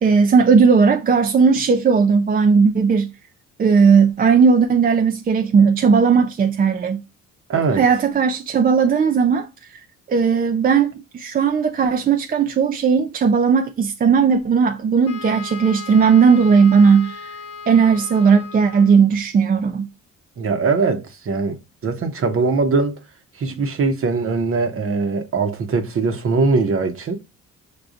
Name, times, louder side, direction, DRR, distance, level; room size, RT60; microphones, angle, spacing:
voice 1, 0.0-3.1 3.6-7.0 7.7-9.8 10.1-17.4 17.7-19.9, right 5 dB, 30° right, 0.4 m, -16 dB
voice 2, 7.5-7.8 20.4-21.6 21.8-23.0 23.4-27.2, right 4 dB, 45° right, 0.8 m, -21 dB
Wind instrument woodwind instrument, 15.1-19.1, left 5 dB, 50° left, 0.7 m, -36 dB
6.3 x 2.2 x 2.5 m
cardioid pair, 90°, 30 cm